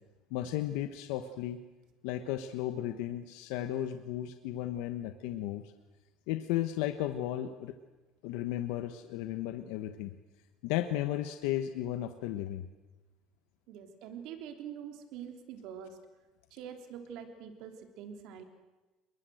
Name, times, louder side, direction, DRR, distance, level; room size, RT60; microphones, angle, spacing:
voice 1, 0.3-1.6 2.0-5.6 6.3-7.7 8.2-10.1 10.6-12.7, left 12 dB, 85° left, 8 dB, 1.3 m, -34 dB
voice 2, 13.7-16.0 16.5-18.4, right 8 dB, 60° right, 6 dB, 3.3 m, -45 dB
27.5 x 22.5 x 7.9 m, 1.2 s
cardioid pair, 175°, 0 cm